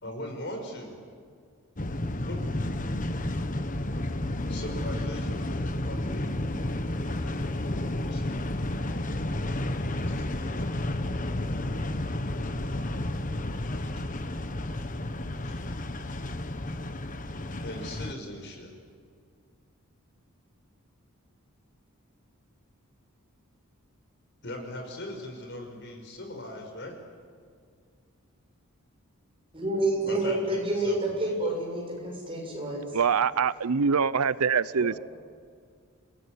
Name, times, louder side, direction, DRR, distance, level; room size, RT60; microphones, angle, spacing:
voice 1, 0.0-1.0 2.3-2.4 4.5-6.3 7.1-8.4 10.1-10.7 13.8-14.0 15.4-15.6 17.6-18.7 24.4-27.0 30.1-30.4 30.8-31.5 34.8-35.0, left 1 dB, 55° left, 3 dB, 5.7 m, -40 dB
sound 1, 1.8-18.1, left 1 dB, 35° left, 1.3 m, -31 dB
voice 2, 29.5-32.8, right 1 dB, 25° right, 0 dB, 7.2 m, -28 dB
voice 3, 32.9-35.0, right 6 dB, 90° right, 18 dB, 0.6 m, -24 dB
29.5 x 18.0 x 9.8 m, 2.1 s
head